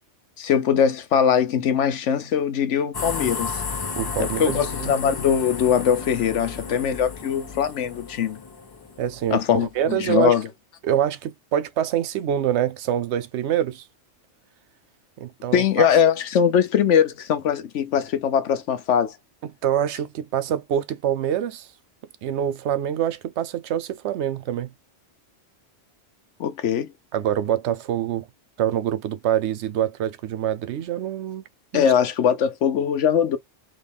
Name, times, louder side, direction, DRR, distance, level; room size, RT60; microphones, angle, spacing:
voice 1, 0.4-3.6 4.2-8.4 9.3-10.5 15.5-19.1 26.4-26.9 31.7-33.4, left 8 dB, 80° left, 1.1 m, -21 dB
sound 1, 2.9-9.8, left 5 dB, 40° left, 0.3 m, -33 dB
voice 2, 4.0-4.9 9.0-10.4 10.8-13.8 15.2-15.9 19.6-21.7 22.2-24.7 27.1-28.3 28.6-31.4 31.7-31.9, right 10 dB, 75° right, 0.9 m, -25 dB
3.7 x 3.2 x 3.5 m
omnidirectional pair, 1.2 m